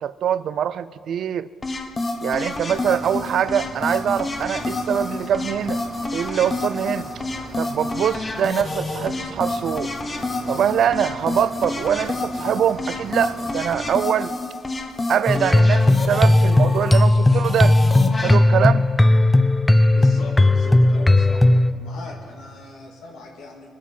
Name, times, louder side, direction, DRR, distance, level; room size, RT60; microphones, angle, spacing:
voice 1, 0.0-1.5 2.2-5.8 6.1-7.1 7.6-9.9 10.5-14.3 15.1-17.8 18.2-18.9, right 9 dB, 65° right, 16 dB, 0.4 m, -23 dB
sound 1, 1.6-18.4, left 2 dB, 30° left, 1.2 m, -29 dB
Cricket, 2.5-13.9, right 4 dB, 50° right, 1.0 m, -41 dB
sound 2, 15.3-21.7, left 2 dB, 15° left, 0.5 m, -16 dB
voice 2, 19.9-21.5 21.8-23.7, left 3 dB, 90° left, -1 dB, 1.9 m, -39 dB
20.0 x 8.6 x 5.5 m, 2.2 s
cardioid pair, 90°, 0 cm